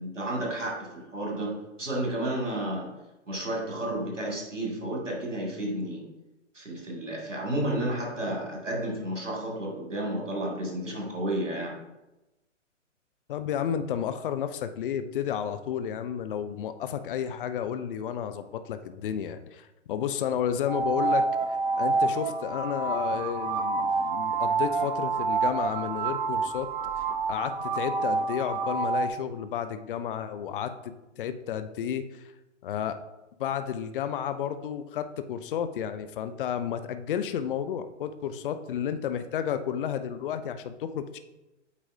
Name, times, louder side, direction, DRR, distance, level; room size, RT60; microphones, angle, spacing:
voice 1, 0.0-2.9 3.3-6.0 6.5-11.7, right 1 dB, 85° right, -2 dB, 2.2 m, -31 dB
voice 2, 13.3-21.3 21.8-26.7 27.3-32.2 32.6-33.0 33.4-41.2, left 9 dB, 45° left, 11 dB, 0.5 m, -32 dB
sound 1, 20.7-29.1, right 4 dB, 45° right, 0.7 m, -28 dB
8.2 x 4.8 x 2.7 m, 0.99 s
figure-of-eight pair, 125°, 36 cm